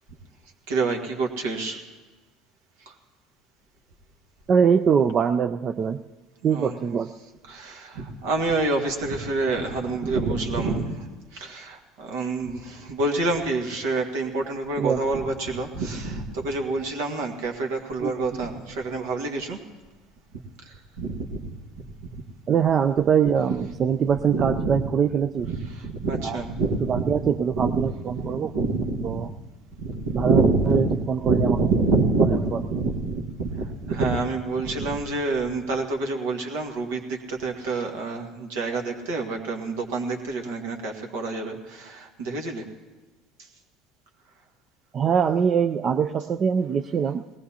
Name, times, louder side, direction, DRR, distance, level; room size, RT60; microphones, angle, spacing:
voice 1, 0.7-1.8 2.8-2.9 6.4-6.7 7.5-19.6 20.6-21.5 21.8-22.2 24.3-24.9 25.4-27.2 27.6-27.8 28.1-29.3 29.8-42.6, right 3 dB, 70° right, 2 dB, 1.7 m, -27 dB
voice 2, 4.5-6.0 6.4-7.1 14.8-15.0 18.0-18.1 22.5-25.5 26.2-26.4 26.8-28.5 29.0-29.3 30.1-31.6 32.5-32.6 44.9-47.2, right 7 dB, 40° right, 7 dB, 0.4 m, -23 dB
20.5 x 18.5 x 2.8 m, 1.2 s
hypercardioid pair, 70°, 0 cm